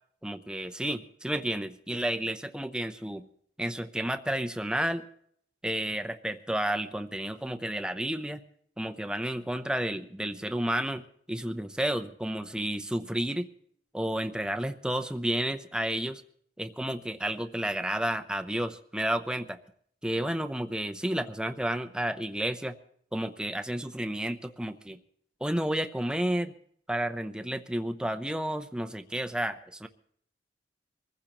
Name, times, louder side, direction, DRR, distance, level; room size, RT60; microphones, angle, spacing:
voice 1, 0.2-3.3 3.6-5.0 5.6-8.4 8.8-13.5 13.9-16.2 16.6-19.6 20.0-22.8 23.1-25.0 25.4-26.5 26.9-29.9, right 1 dB, 5° right, 8 dB, 0.6 m, -31 dB
25.0 x 15.0 x 3.0 m, 0.64 s
head